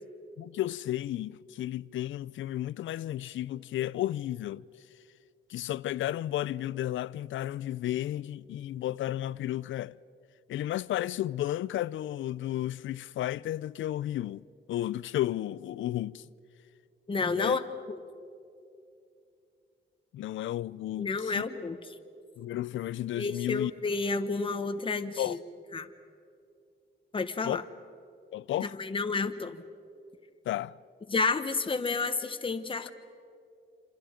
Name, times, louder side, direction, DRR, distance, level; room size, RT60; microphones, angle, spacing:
voice 1, 0.4-4.6 5.5-10.0 10.5-16.3 17.4-17.6 20.1-21.4 22.4-23.7 25.2-25.4 27.4-27.6 28.3-28.7 30.5-30.8, left 13 dB, 85° left, 0.5 m, -33 dB
voice 2, 17.1-17.6 17.9-18.0 21.0-21.8 23.2-25.4 25.7-25.9 27.1-27.6 28.6-29.6 31.1-32.9, left 4 dB, 25° left, 1.2 m, -30 dB
28.0 x 27.0 x 5.1 m
cardioid pair, 115°, 19 cm